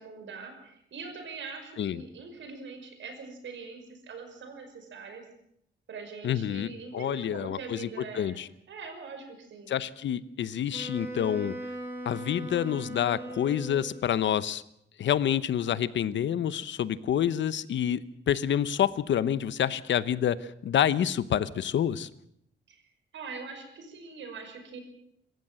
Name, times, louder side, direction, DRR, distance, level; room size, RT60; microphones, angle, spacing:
voice 1, 0.0-5.2 5.9-9.7 22.7-22.8 23.1-24.8, right 4 dB, 75° right, 6 dB, 5.8 m, -43 dB
voice 2, 6.2-7.9 8.1-8.5 9.7-11.6 12.0-14.6 15.0-20.4 20.6-22.1, left 9 dB, 70° left, 16 dB, 0.9 m, -28 dB
Wind instrument woodwind instrument, 10.7-14.3, right 1 dB, 10° right, 5.3 m, -39 dB
26.0 x 15.0 x 7.7 m, 0.73 s
wide cardioid pair, 160°, 20 cm